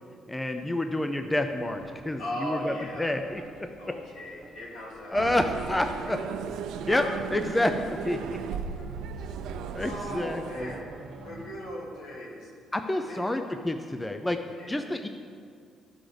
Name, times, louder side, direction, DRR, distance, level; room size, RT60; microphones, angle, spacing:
voice 1, 0.3-3.7 5.1-6.2 6.9-7.1 7.3-8.4 9.7-10.7 12.7-14.4 14.7-15.1, left 1 dB, 10° left, 6 dB, 0.4 m, -29 dB
sound 1, 1.6-11.5, right 4 dB, 50° right, 1.0 m, -48 dB
voice 2, 2.2-3.1 3.8-5.3 6.9-7.1 7.5-7.6 8.5-8.9 9.8-10.9 11.2-12.5 12.9-13.3 14.6-14.9, left 1 dB, 70° left, -3 dB, 2.5 m, -38 dB
sound 2, 5.1-10.8, right 7 dB, 85° right, 0.5 m, -36 dB
14.0 x 6.1 x 5.0 m, 2.2 s
cardioid pair, 145°, 0 cm